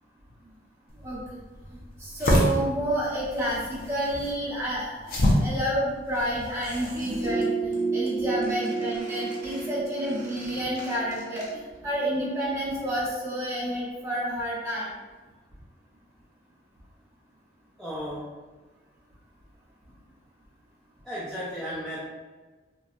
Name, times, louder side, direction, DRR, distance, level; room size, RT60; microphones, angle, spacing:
sound 1, 0.9-7.3, left 1 dB, 50° left, 0.6 m, -28 dB
voice 1, 1.0-1.4 1.7-14.9, right 1 dB, 15° right, -9 dB, 1.1 m, -30 dB
Squeak, 6.6-7.4 7.7-8.1 8.4-11.8 12.1-12.2, right 1 dB, 45° right, 0.7 m, -47 dB
sound 2, 6.9-12.1 12.4-12.5, right 4 dB, 65° right, 0.4 m, -31 dB
voice 2, 17.8-18.4 21.0-22.1, equal, ahead, -10 dB, 0.4 m, -35 dB
2.9 x 2.7 x 2.3 m, 1.3 s
head